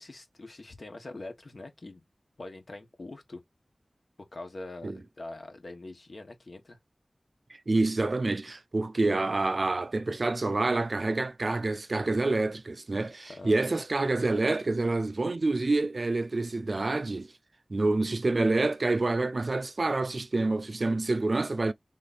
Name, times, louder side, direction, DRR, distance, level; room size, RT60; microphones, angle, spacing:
voice 1, 0.0-2.0 2.4-3.4 4.3-6.8 13.3-13.7, left 2 dB, 65° left, 1.3 m, -43 dB
voice 2, 7.5-17.3 17.7-21.7, right 2 dB, 60° right, 0.4 m, -27 dB
3.7 x 3.3 x 4.1 m
wide cardioid pair, 65°, 0 cm